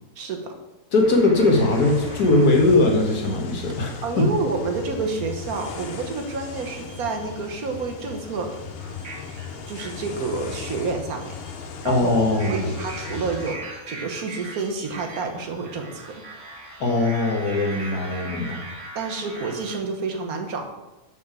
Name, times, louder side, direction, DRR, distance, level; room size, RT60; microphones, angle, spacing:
voice 1, 0.2-0.5 4.0-8.6 9.7-11.4 11.8-12.1 12.5-16.1 18.9-20.6, right 4 dB, 70° right, 4 dB, 1.5 m, -29 dB
voice 2, 0.9-3.9 4.2-4.3 11.8-12.7 16.8-18.6, left 2 dB, 80° left, 0 dB, 1.9 m, -20 dB
sound 1, 1.0-3.4 4.9-6.2 6.5-7.4 7.8-19.8, right 2 dB, 50° right, 1.9 m, -40 dB
sound 2, 1.5-13.5, left 6 dB, 55° left, 0.7 m, -37 dB
7.0 x 5.4 x 4.9 m, 1.0 s
omnidirectional pair, 1.6 m